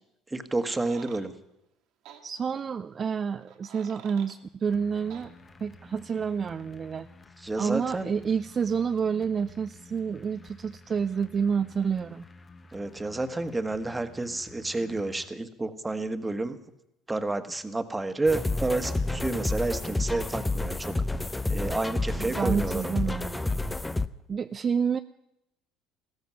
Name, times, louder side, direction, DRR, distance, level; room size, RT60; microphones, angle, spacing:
voice 1, 0.3-1.3 7.4-8.1 12.7-16.6 17.1-21.0 21.5-22.9, right 2 dB, 15° right, 10 dB, 1.4 m, -30 dB
sound 1, 0.6-1.2 2.0-2.2 3.4-4.4 5.1-5.3, right 9 dB, 70° right, 1.9 m, -49 dB
voice 2, 2.2-5.3 5.6-7.1 7.6-12.2 22.2-23.7 24.3-25.0, right 6 dB, 40° right, 10 dB, 0.5 m, -29 dB
sound 2, 4.7-15.3, left 2 dB, 30° left, 1.3 m, -51 dB
sound 3, 18.3-24.1, left 2 dB, 10° left, 0.7 m, -29 dB
15.5 x 13.5 x 6.2 m, 0.86 s
hypercardioid pair, 75°, 0 cm